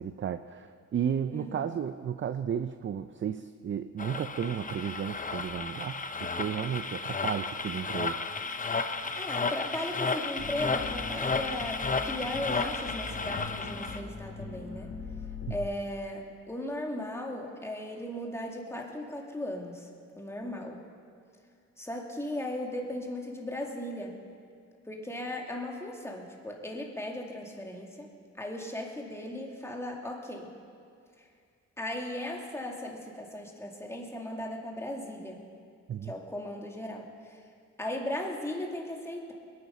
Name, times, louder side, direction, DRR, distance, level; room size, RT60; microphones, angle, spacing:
voice 1, 0.0-8.2 15.5-15.6 35.9-36.1, right 8 dB, 40° right, 10 dB, 0.5 m, -33 dB
voice 2, 1.3-1.6 9.1-15.0 15.5-19.9 20.2-20.8 21.8-24.2 24.9-30.5 31.2-31.3 31.8-35.4 36.0-37.4 37.8-39.3, left 1 dB, 10° left, 0 dB, 2.2 m, -37 dB
sound 1, 4.0-14.0, left 4 dB, 25° left, 0.8 m, -33 dB
sound 2, 10.4-15.6, left 4 dB, 75° left, 2.2 m, -41 dB
21.0 x 9.6 x 5.6 m, 2.3 s
cardioid pair, 90°, 29 cm